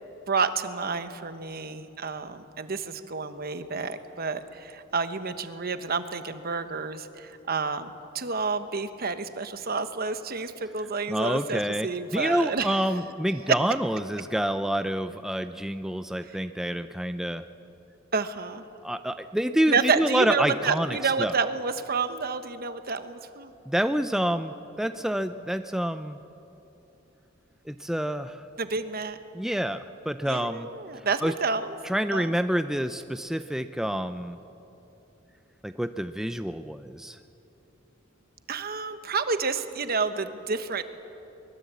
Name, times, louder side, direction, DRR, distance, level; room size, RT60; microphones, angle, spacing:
voice 1, 0.3-12.8 18.1-18.6 19.7-23.5 28.6-29.2 30.3-31.7 32.1-32.3 38.5-40.8, right 4 dB, 50° right, 10 dB, 1.1 m, -29 dB
voice 2, 11.1-17.4 18.8-21.4 23.7-26.2 27.7-28.5 29.3-30.7 31.2-31.3 31.8-34.4 35.6-37.2, equal, ahead, 9 dB, 0.4 m, -28 dB
23.5 x 21.0 x 8.3 m, 3.0 s
head